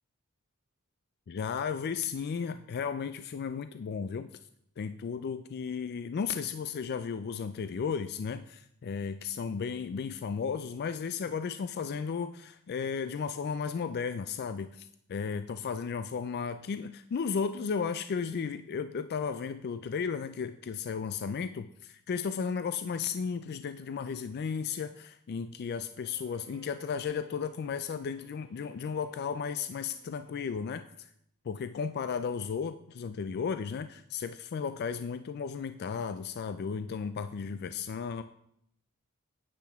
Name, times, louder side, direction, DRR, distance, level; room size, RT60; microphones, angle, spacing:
voice 1, 1.3-4.3 4.8-31.1 31.4-38.2, left 6 dB, 45° left, 11 dB, 0.3 m, -34 dB
Bowed string instrument, 25.8-30.9, right 2 dB, 80° right, 1.6 m, -60 dB
10.0 x 8.8 x 3.5 m, 0.73 s
head